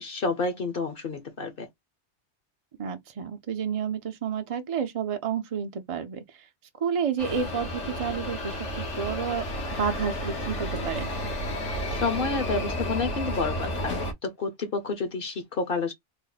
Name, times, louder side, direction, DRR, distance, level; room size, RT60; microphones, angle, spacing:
voice 1, 0.0-1.7 11.9-13.9 14.2-15.9, left 4 dB, 55° left, 0.9 m, -29 dB
voice 2, 2.8-6.5 6.8-9.4 9.8-11.1, right 7 dB, 45° right, 0.4 m, -30 dB
sound 1, 7.2-14.1, left 1 dB, 80° left, 1.5 m, -32 dB
3.5 x 2.1 x 3.9 m
omnidirectional pair, 1.2 m